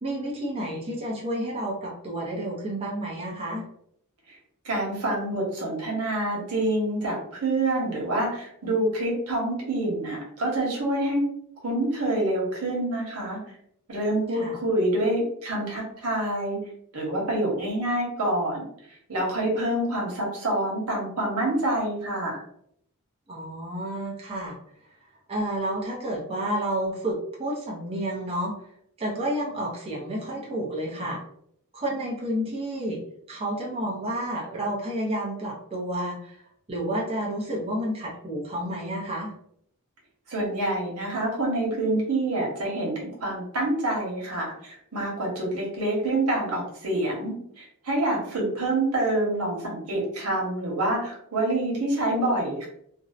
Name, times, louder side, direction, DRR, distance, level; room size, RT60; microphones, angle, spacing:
voice 1, 0.0-3.7 14.3-14.6 23.3-24.6 25.3-28.5 29.0-31.2 31.7-33.0 33.3-36.4 36.7-39.3 48.3-48.6, right 1 dB, 25° right, -3 dB, 0.5 m, -30 dB
voice 2, 4.6-11.2 11.6-13.4 13.9-16.6 16.9-18.7 19.1-22.4 40.3-52.7, right 1 dB, 85° right, -2 dB, 1.0 m, -27 dB
2.6 x 2.0 x 2.4 m, 0.70 s
head